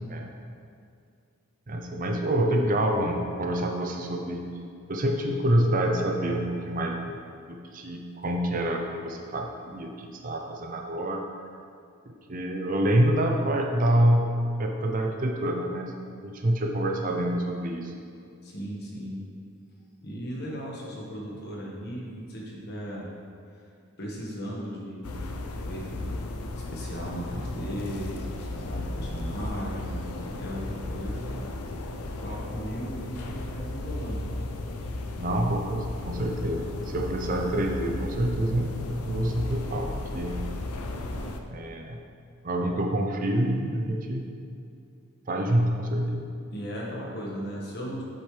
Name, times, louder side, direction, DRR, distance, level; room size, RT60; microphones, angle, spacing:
voice 1, 1.7-4.5 4.9-7.2 7.5-11.3 12.1-14.3 14.6-15.9 16.2-17.9 35.2-40.4 41.5-42.0 42.4-44.2 45.3-46.2, right 1 dB, 40° right, 2 dB, 0.6 m, -27 dB
voice 2, 18.4-19.3 20.0-23.1 23.5-23.6 24.0-25.3 25.7-26.1 26.5-31.4 32.2-34.3 46.5-48.0, equal, 45° left, -3 dB, 1.5 m, -37 dB
sound 1, 25.0-41.4, left 2 dB, 90° left, 0.6 m, -35 dB
7.9 x 7.3 x 3.3 m, 2.4 s
head